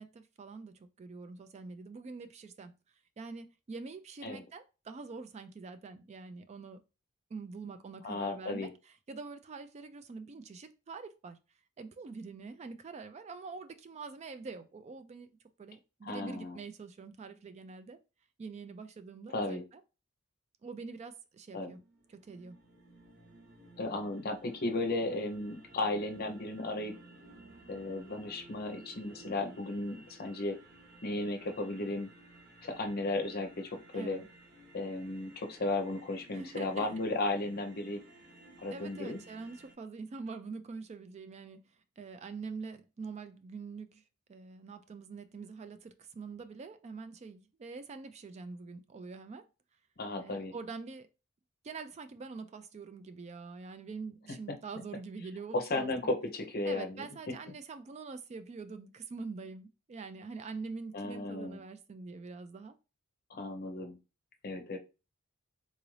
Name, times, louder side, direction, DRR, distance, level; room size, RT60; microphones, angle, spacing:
voice 1, 0.0-2.7 3.2-6.8 7.3-11.4 11.8-15.3 15.6-18.0 18.4-19.8 20.6-21.8 22.1-22.6 33.9-34.3 36.3-36.9 38.7-41.6 42.0-44.0 44.3-49.5 50.2-51.1 51.6-55.9 56.6-62.8, right 4 dB, 30° right, 0.3 m, -45 dB
voice 2, 8.0-8.7 16.0-16.6 19.3-19.6 21.5-21.8 23.8-27.0 27.7-30.6 31.0-32.1 32.6-34.2 34.7-38.0 38.6-39.2 50.0-50.5 55.5-57.0 60.9-61.6 63.3-64.0 64.4-64.8, left 2 dB, 45° left, 0.7 m, -35 dB
sound 1, 21.6-39.7, right 2 dB, 50° right, 0.9 m, -56 dB
3.8 x 2.5 x 3.1 m
head